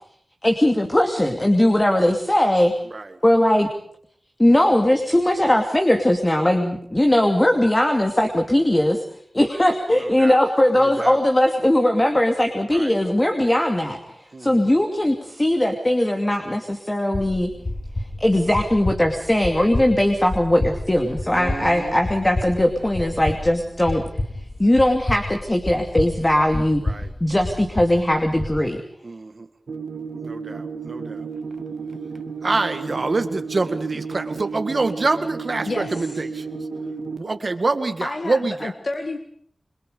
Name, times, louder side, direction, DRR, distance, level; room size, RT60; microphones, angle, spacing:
voice 1, 0.4-2.7 3.2-3.7 4.4-9.0 9.3-17.5 18.2-24.0 24.6-26.8 27.2-28.8, left 1 dB, 20° left, 4 dB, 2.7 m, -19 dB
voice 2, 9.9-10.4 10.7-11.2 12.7-12.9 14.3-14.8 21.3-22.0 26.8-27.1 29.0-29.5 30.2-31.3 32.4-36.5 37.2-38.7, right 3 dB, 55° right, 9 dB, 1.8 m, -26 dB
sound 1, 17.1-28.6, left 1 dB, 40° left, 2.5 m, -30 dB
sound 2, 29.7-37.2, right 5 dB, 85° right, 2.2 m, -32 dB
voice 3, 38.0-39.2, left 2 dB, 60° left, 6 dB, 1.9 m, -29 dB
28.0 x 22.5 x 5.2 m, 0.63 s
wide cardioid pair, 55°, 0 cm